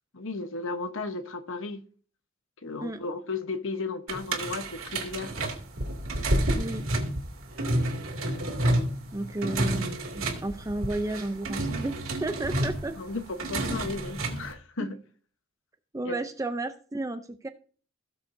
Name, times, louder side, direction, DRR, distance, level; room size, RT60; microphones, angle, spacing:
voice 1, 0.1-1.8 2.6-5.3 13.0-15.0 16.0-16.2, left 3 dB, 65° left, 1.1 m, -34 dB
sound 1, 4.1-14.5, right 1 dB, 70° right, 2.4 m, -30 dB
voice 2, 6.6-6.9 9.1-9.9 10.1-13.0 15.9-17.5, right 2 dB, 15° right, 0.5 m, -32 dB
17.5 x 7.0 x 2.7 m
head